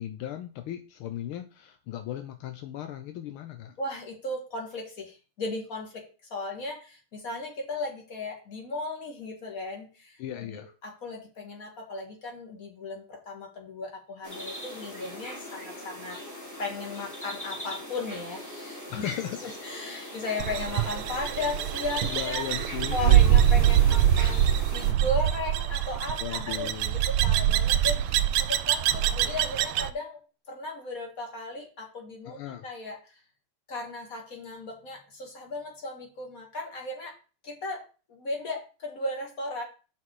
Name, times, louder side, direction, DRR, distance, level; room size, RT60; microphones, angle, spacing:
voice 1, 0.0-3.8 10.2-10.7 18.9-19.4 22.0-23.4 26.2-27.0 32.3-32.6, left 11 dB, 80° left, 7 dB, 1.6 m, -36 dB
voice 2, 3.8-6.0 6.3-16.2 16.6-22.4 22.9-26.7 27.2-30.2 30.5-33.2 33.7-37.1 37.4-37.8 38.1-39.6, left 2 dB, 40° left, 0 dB, 2.4 m, -36 dB
sound 1, 14.2-24.9, equal, 10° left, 1.7 m, -40 dB
sound 2, 20.4-29.9, right 11 dB, 85° right, 1.5 m, -24 dB
5.9 x 4.7 x 6.3 m, 0.35 s
omnidirectional pair, 2.3 m